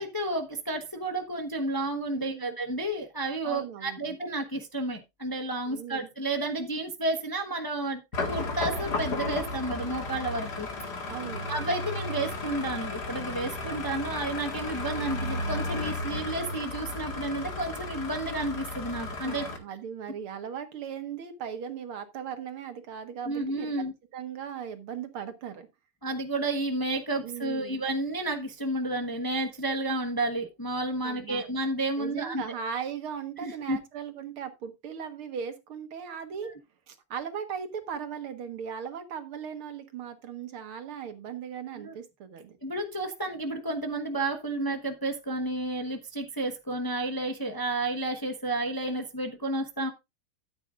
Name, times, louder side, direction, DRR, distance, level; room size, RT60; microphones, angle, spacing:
voice 1, 0.0-8.0 8.3-10.7 11.5-19.4 23.2-23.9 26.0-32.4 33.4-33.8 36.4-36.5 41.8-41.9 42.6-49.9, right 2 dB, 15° left, 4 dB, 0.9 m, -31 dB
voice 2, 2.1-2.6 3.4-4.0 5.7-6.1 11.1-11.5 19.2-23.7 24.1-25.7 27.2-27.8 31.0-31.4 32.0-36.5 36.9-42.6, right 7 dB, 80° right, 8 dB, 2.4 m, -38 dB
sound 1, 8.1-19.6, left 2 dB, 50° left, 2.3 m, -34 dB
13.5 x 8.8 x 2.5 m, 0.23 s
omnidirectional pair, 2.3 m